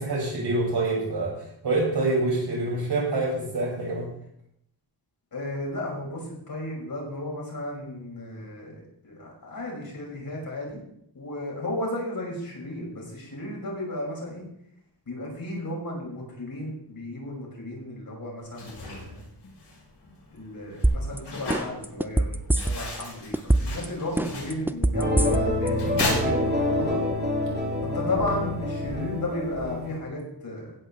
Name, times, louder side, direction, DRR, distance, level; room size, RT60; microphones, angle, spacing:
voice 1, 0.0-1.3 1.6-4.1, right 2 dB, 70° right, -3 dB, 6.2 m, -26 dB
voice 2, 5.3-10.8 11.1-14.5 15.1-19.2 20.3-22.4 22.6-27.1 27.8-30.8, left 1 dB, 55° left, -2 dB, 5.7 m, -34 dB
sound 1, 18.4-27.0, left 2 dB, 80° left, 6.6 m, -36 dB
sound 2, 20.8-21.2 21.5-23.0 23.3-23.8 24.2-25.7 26.0-26.1, right 1 dB, 5° right, 0.5 m, -22 dB
sound 3, 24.9-30.0, left 1 dB, 25° right, 2.5 m, -27 dB
16.5 x 5.8 x 7.3 m, 0.72 s
wide cardioid pair, 180°, 41 cm